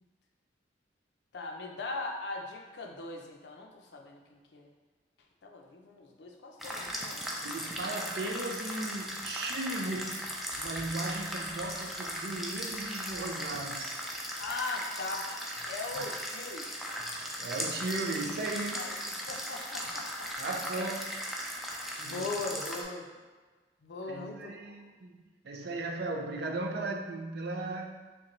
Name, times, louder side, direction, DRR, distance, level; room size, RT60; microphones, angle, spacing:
voice 1, 1.3-4.7 5.4-7.9 14.4-15.3 15.7-16.7 18.7-20.3 20.7-20.9 22.0-23.1 23.8-24.8, left 3 dB, 70° left, 1 dB, 0.5 m, -40 dB
sound 1, 6.6-22.8, equal, ahead, 0.4 m, -38 dB
voice 2, 7.4-14.0 16.0-16.1 17.0-17.1 17.4-18.8 20.4-21.1 22.0-22.3 22.5-22.6 24.1-28.0, right 2 dB, 60° right, 2 dB, 0.5 m, -37 dB
4.9 x 2.2 x 3.0 m, 1.3 s
head